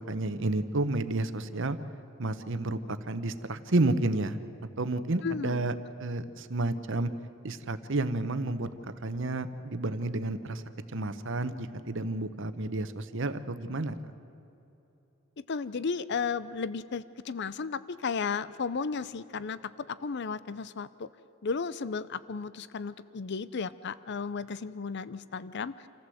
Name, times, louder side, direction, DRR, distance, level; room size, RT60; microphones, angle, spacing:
voice 1, 0.1-1.8 2.2-4.4 4.8-5.7 6.0-7.1 7.4-10.6 10.9-14.0, right 2 dB, 60° right, 11 dB, 1.0 m, -31 dB
voice 2, 5.2-5.7 15.4-19.6 19.9-21.1 21.4-25.8, left 5 dB, 50° left, 16 dB, 0.5 m, -34 dB
27.5 x 15.0 x 7.8 m, 2.9 s
head